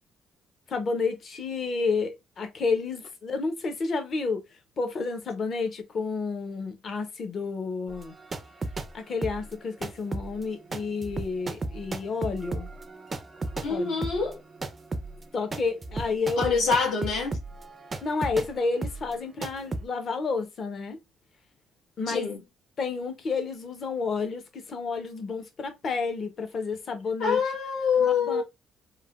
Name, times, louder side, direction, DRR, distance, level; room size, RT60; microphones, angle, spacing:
voice 1, 0.7-4.4 4.8-8.1 8.9-12.7 13.7-14.0 15.3-16.6 18.0-21.0 22.0-22.3 22.8-27.4 28.0-28.4, left 4 dB, 40° left, 0.6 m, -30 dB
sound 1, 7.9-8.9 9.2-18.5 18.8-19.1 19.4-19.8, right 2 dB, 25° right, 0.3 m, -35 dB
voice 2, 13.6-14.4 16.4-17.4 22.1-22.4 27.2-28.4, left 5 dB, 80° left, 1.1 m, -25 dB
3.2 x 2.1 x 2.3 m
cardioid pair, 130°, 0 cm